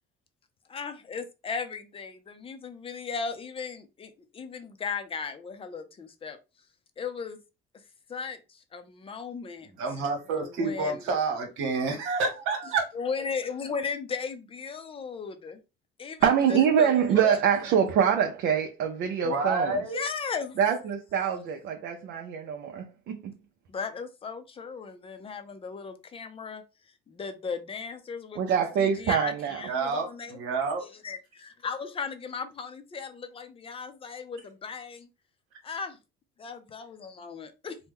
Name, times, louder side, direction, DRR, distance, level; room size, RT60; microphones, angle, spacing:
voice 1, 0.7-6.4 7.0-7.4 8.1-9.7 10.4-11.0 12.9-15.6 16.0-17.4 19.9-20.6 23.7-26.6 27.1-30.4 31.0-35.1 35.6-36.0 36.4-37.8, left 5 dB, 25° left, 0.5 m, -36 dB
voice 2, 9.6-12.9 19.2-20.0 29.6-30.8, right 4 dB, 75° right, 1.1 m, -29 dB
voice 3, 16.2-19.8 20.6-23.3 28.4-29.6, right 8 dB, 60° right, 0.6 m, -25 dB
2.9 x 2.1 x 3.5 m
cardioid pair, 115°, 21 cm